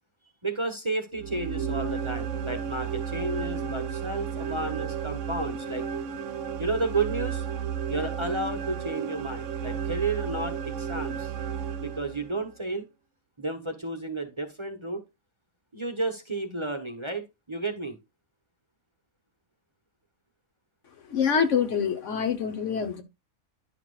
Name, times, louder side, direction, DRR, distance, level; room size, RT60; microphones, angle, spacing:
voice 1, 0.4-5.8 6.6-7.5 7.9-11.3 11.8-12.9 13.4-15.0 15.7-18.0, right 2 dB, 25° right, 1.0 m, -32 dB
sound 1, 1.1-12.5, right 7 dB, 70° right, 0.9 m, -33 dB
voice 2, 21.1-23.0, left 7 dB, 60° left, 1.4 m, -25 dB
11.0 x 5.9 x 2.4 m
omnidirectional pair, 1.4 m